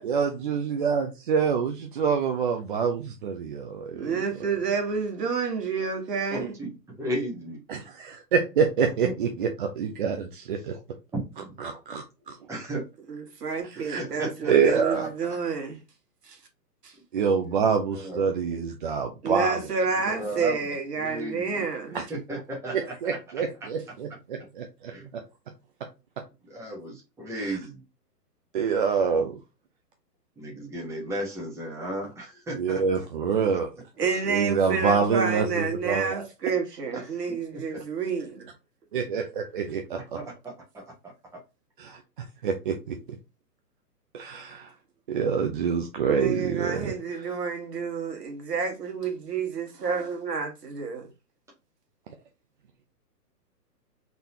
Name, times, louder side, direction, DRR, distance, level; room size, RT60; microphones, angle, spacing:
voice 1, 0.0-4.2 7.7-10.8 11.6-12.3 13.6-14.0 14.5-15.1 17.1-19.6 21.9-22.0 22.7-25.2 27.4-27.6 28.5-29.4 32.6-33.7 34.3-36.1 38.9-40.2 41.8-42.0 42.4-43.0 44.1-44.7 45.1-47.2, right 6 dB, 35° right, 0.5 m, -26 dB
voice 2, 3.9-6.5 13.1-15.8 16.2-16.4 16.8-16.9 19.2-22.0 34.0-38.5 46.1-51.1, right 5 dB, 70° right, 1.8 m, -29 dB
voice 3, 6.3-6.7 7.0-7.6 9.0-9.1 11.1-11.5 12.5-12.8 13.8-15.4 17.3-17.6 17.9-18.3 20.0-20.6 21.0-21.6 22.1-23.2 23.6-23.7 24.9-25.1 26.5-27.8 30.4-33.0 33.5-33.6 36.9-37.1 37.5-37.8 39.9-41.4, right 1 dB, 5° right, 1.4 m, -35 dB
4.0 x 3.7 x 2.6 m
hypercardioid pair, 130°, 49 cm